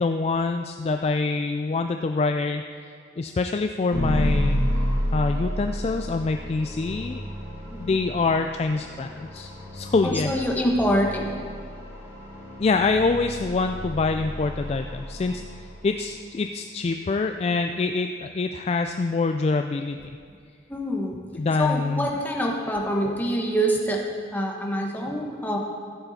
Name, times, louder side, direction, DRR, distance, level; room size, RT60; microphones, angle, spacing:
voice 1, 0.0-2.7 3.2-4.6 5.1-7.2 7.8-10.3 12.6-20.2 21.3-22.1, left 3 dB, 35° left, 6 dB, 0.3 m, -25 dB
sound 1, 3.9-16.1, equal, 15° right, 2.9 m, -31 dB
voice 2, 10.0-11.3 20.7-21.2 21.6-25.6, equal, 10° left, -1 dB, 1.2 m, -25 dB
14.5 x 8.0 x 4.2 m, 2.3 s
head